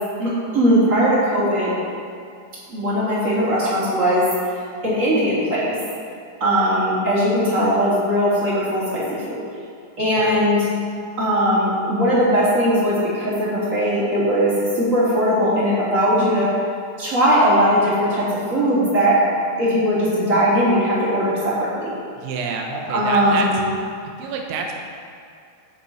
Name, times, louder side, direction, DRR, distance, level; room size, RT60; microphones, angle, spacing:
voice 1, 0.2-1.7 2.7-4.3 4.8-5.7 6.4-9.4 10.0-10.7 11.2-16.5 17.0-19.2 19.6-21.9 22.9-23.6, equal, 20° right, -8 dB, 2.3 m, -19 dB
voice 2, 10.0-10.4 22.2-23.5 24.2-24.8, right 5 dB, 80° right, 1 dB, 3.7 m, -28 dB
18.0 x 6.9 x 4.3 m, 2.4 s
omnidirectional pair, 6.0 m